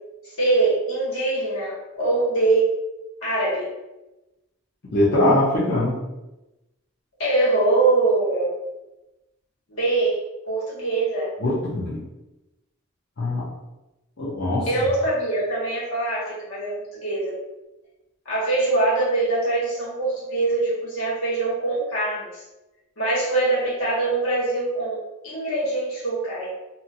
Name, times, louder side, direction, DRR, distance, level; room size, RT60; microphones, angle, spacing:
voice 1, 0.4-2.7 3.2-3.7 7.2-8.6 9.7-10.2 10.5-11.3 14.7-17.3 18.2-22.4 23.0-25.0 25.2-26.5, right 2 dB, 75° left, -7 dB, 1.4 m, -23 dB
voice 2, 4.9-6.0 11.4-12.0 13.2-13.5 14.2-14.7, left 1 dB, 50° left, -10 dB, 0.7 m, -21 dB
2.6 x 2.5 x 2.7 m, 1.0 s
head